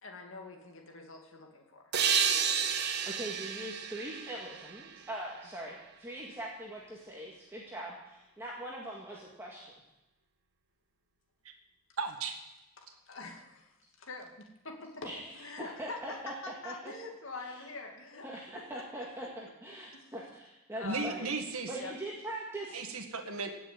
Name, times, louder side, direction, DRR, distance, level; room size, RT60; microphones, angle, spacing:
voice 1, 0.0-1.9 12.8-13.7 14.0-16.2 16.4-18.4 18.7-18.8 19.2-19.3 19.9-20.1 20.8-21.2 21.8-21.9, left 3 dB, 60° left, 2 dB, 2.3 m, -45 dB
sound 1, 1.9-5.4, right 7 dB, 50° right, 1.2 m, -31 dB
voice 2, 3.0-9.7 15.0-16.3 16.6-16.9 17.4-17.6 18.2-21.3 21.7-22.8, right 1 dB, 10° right, -4 dB, 2.0 m, -42 dB
voice 3, 12.0-12.4 20.8-21.7 22.7-23.5, right 4 dB, 75° right, 4 dB, 1.9 m, -35 dB
17.5 x 7.0 x 8.6 m, 0.96 s
head